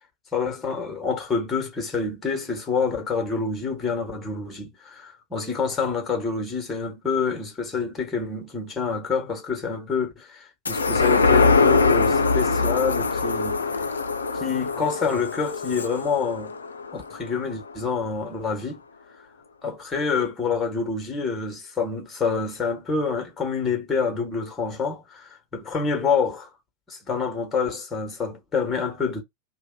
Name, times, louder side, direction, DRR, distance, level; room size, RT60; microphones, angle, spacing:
voice 1, 0.3-13.6 14.3-16.5 16.9-18.8 19.6-26.5 26.9-29.2, left 5 dB, 15° left, 1.1 m, -27 dB
sound 1, 10.7-17.4 17.9-18.0, left 4 dB, 75° left, 0.4 m, -22 dB
2.6 x 2.2 x 3.8 m
figure-of-eight pair, 90°, 0 cm